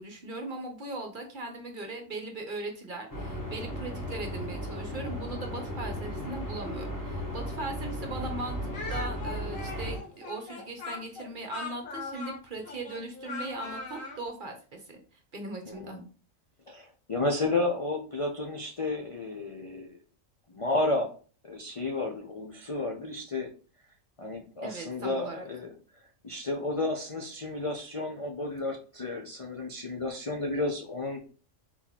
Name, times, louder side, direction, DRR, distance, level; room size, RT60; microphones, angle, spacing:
voice 1, 0.0-15.0 15.3-16.0 24.6-25.5, right 2 dB, 45° right, 3 dB, 0.9 m, -39 dB
sound 1, 3.1-10.0, equal, 15° left, 1.1 m, -36 dB
Speech, 8.7-14.2, left 3 dB, 75° left, 1.6 m, -40 dB
voice 2, 15.7-16.0 16.7-20.0 20.5-21.1 21.5-23.5 24.2-25.7 26.2-31.2, left 2 dB, 40° left, 1 dB, 0.4 m, -32 dB
4.2 x 2.9 x 4.1 m, 0.39 s
omnidirectional pair, 1.4 m